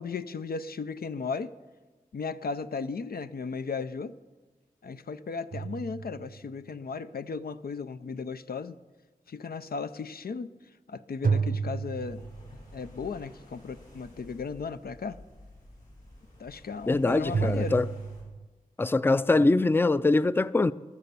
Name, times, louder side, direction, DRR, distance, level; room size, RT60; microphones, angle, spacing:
voice 1, 0.0-1.5 2.1-4.2 4.8-8.8 9.3-10.5 10.9-12.3 12.7-15.2 16.4-17.8, left 5 dB, 90° left, 0.5 m, -36 dB
sound 1, 5.5-6.7 11.2-12.8 17.3-18.5, right 5 dB, 70° right, 0.6 m, -31 dB
sound 2, 12.0-18.2, left 1 dB, 65° left, 5.2 m, -51 dB
voice 2, 16.9-17.9 18.8-20.7, left 2 dB, 15° left, 0.3 m, -23 dB
20.5 x 6.8 x 6.8 m
wide cardioid pair, 60°, 15 cm